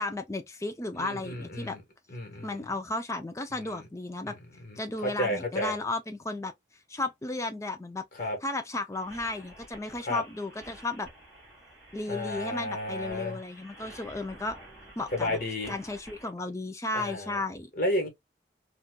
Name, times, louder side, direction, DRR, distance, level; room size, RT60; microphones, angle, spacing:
voice 1, 0.0-1.8 2.4-4.4 4.8-6.5 6.9-8.0 8.4-11.1 11.9-14.6 15.0-15.4 15.7-17.7, left 2 dB, 15° left, 0.5 m, -34 dB
voice 2, 1.0-1.8 2.1-2.6 3.5-3.8 4.3-4.4 4.6-5.7 8.1-8.4 10.1-10.2 12.1-13.4 15.1-15.7 16.9-17.4 17.8-18.1, left 1 dB, 50° left, 1.3 m, -32 dB
sound 1, 8.9-16.3, right 1 dB, ahead, 2.4 m, -51 dB
4.1 x 2.4 x 2.3 m
head